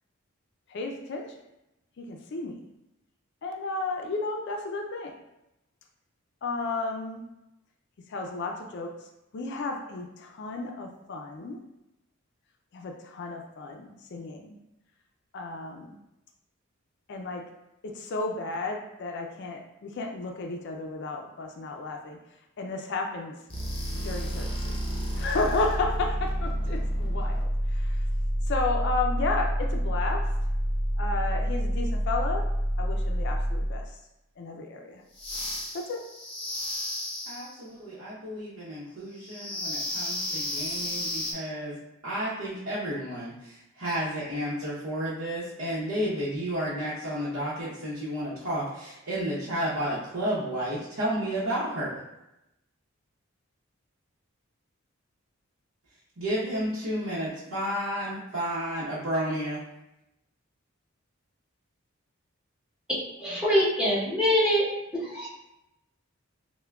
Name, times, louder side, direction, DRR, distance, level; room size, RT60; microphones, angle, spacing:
voice 1, 0.7-1.3 2.0-2.6 3.4-5.1 6.4-7.2 8.1-8.9 9.3-11.6 12.7-14.6 15.3-16.0 17.1-17.4 17.8-22.2 22.6-23.4 24.0-24.7 25.2-28.0 28.5-30.3 31.0-32.5 32.8-33.8 34.4-35.0 35.7-36.0, left 3 dB, 60° left, 3 dB, 0.4 m, -33 dB
sound 1, 23.5-33.9 35.1-37.6 39.2-41.3, equal, 30° left, 0.7 m, -29 dB
voice 2, 37.3-51.9 56.2-59.6, equal, 80° right, -9 dB, 0.8 m, -32 dB
voice 3, 63.2-65.3, equal, 5° right, -8 dB, 0.9 m, -24 dB
5.6 x 2.2 x 2.3 m, 0.90 s
head